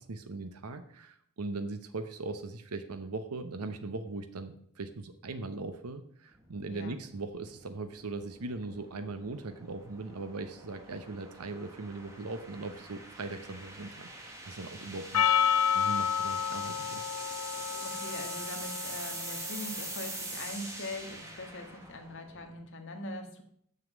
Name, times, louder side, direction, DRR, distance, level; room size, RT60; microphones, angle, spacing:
voice 1, 0.0-14.1 14.4-15.4 15.7-17.1, right 3 dB, 80° right, 8 dB, 0.8 m, -39 dB
sound 1, 6.3-22.6, right 2 dB, 15° right, 1.6 m, -44 dB
voice 2, 6.7-7.0 17.8-23.4, left 2 dB, 55° left, 4 dB, 1.6 m, -42 dB
Percussion, 15.1-19.7, left 8 dB, 80° left, 0.8 m, -30 dB
7.1 x 6.6 x 7.2 m, 0.67 s
head